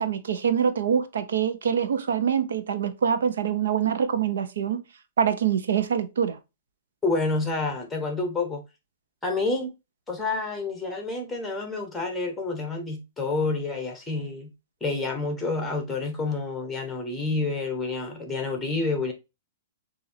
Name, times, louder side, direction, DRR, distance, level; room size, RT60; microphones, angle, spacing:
voice 1, 0.0-4.8 5.2-6.4, right 8 dB, 85° right, 0.9 m, -25 dB
voice 2, 7.0-8.6 9.2-9.7 10.1-14.5 14.8-19.1, left 3 dB, 5° left, 1.2 m, -28 dB
6.6 x 2.8 x 2.8 m
hypercardioid pair, 160°, 0 cm